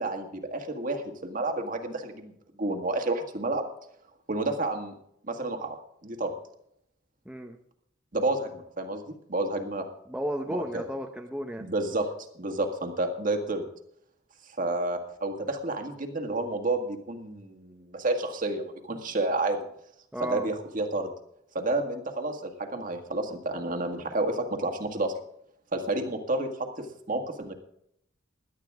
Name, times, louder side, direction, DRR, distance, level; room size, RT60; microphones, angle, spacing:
voice 1, 0.0-2.3 2.6-3.6 4.3-4.9 5.3-5.8 6.0-6.3 8.1-9.0 9.3-9.9 10.5-10.8 11.6-12.1 12.4-13.6 14.6-19.6 20.2-21.1 21.6-25.1 25.7-27.5, right 2 dB, 45° right, 4 dB, 1.8 m, -30 dB
voice 2, 7.3-7.6 10.1-11.7 20.1-20.5, equal, 5° right, 2 dB, 0.8 m, -33 dB
17.0 x 11.5 x 3.6 m, 0.73 s
head